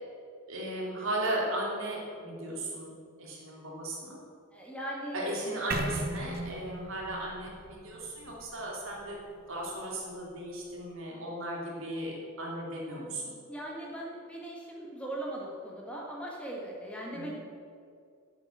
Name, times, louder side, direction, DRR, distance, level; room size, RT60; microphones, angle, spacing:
voice 1, 0.5-2.9 3.2-4.2 5.1-9.2 9.5-13.3 17.1-17.3, right 1 dB, 65° right, -3 dB, 3.0 m, -36 dB
voice 2, 4.5-5.3 13.5-17.4, right 1 dB, 5° left, -3 dB, 1.7 m, -39 dB
sound 1, 5.7-9.7, right 2 dB, 45° right, 1.0 m, -38 dB
8.4 x 7.9 x 8.6 m, 2.3 s
head